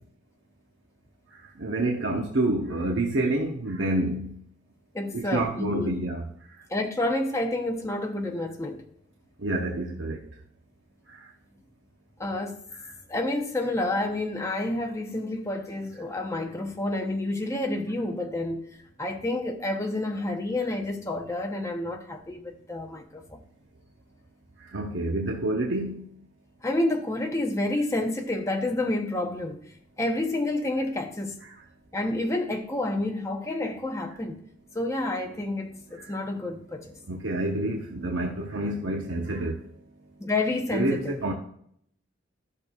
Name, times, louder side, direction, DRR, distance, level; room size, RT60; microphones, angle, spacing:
voice 1, 1.6-4.3 5.1-6.2 9.4-10.2 24.7-26.0 37.1-39.6 40.7-41.3, right 2 dB, 75° right, 0.9 m, -28 dB
voice 2, 4.9-6.0 6.7-8.8 12.2-12.6 13.1-18.6 19.0-23.4 26.6-29.7 30.0-31.3 31.9-34.4 34.7-36.9 40.2-41.2, left 2 dB, 15° left, 0.8 m, -29 dB
12.5 x 6.5 x 2.4 m
head